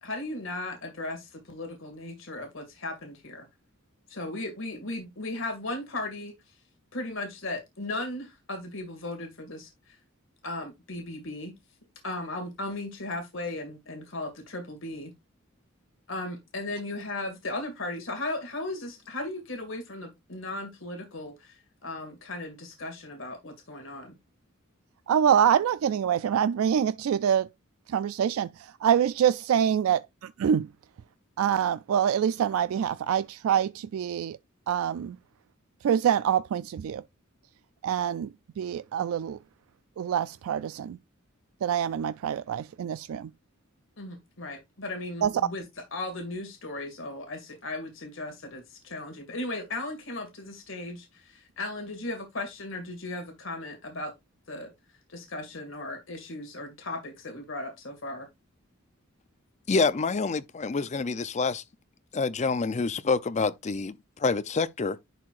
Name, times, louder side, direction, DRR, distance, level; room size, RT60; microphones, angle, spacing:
voice 1, 0.0-3.5 4.1-6.3 6.9-10.0 10.4-11.5 12.0-15.1 16.1-24.2 44.0-45.6 45.9-54.1 54.5-54.7 55.1-58.3, left 2 dB, 65° left, 2.1 m, -36 dB
voice 2, 25.1-27.5 27.9-28.5 28.8-30.7 31.4-34.4 34.7-35.2 35.8-37.0 37.8-38.3 38.6-39.4 40.0-41.0 41.6-43.3 45.2-45.3, right 8 dB, 80° right, 0.3 m, -25 dB
voice 3, 59.7-61.6 62.1-65.0, left 4 dB, 35° left, 0.5 m, -27 dB
11.0 x 4.7 x 2.5 m
head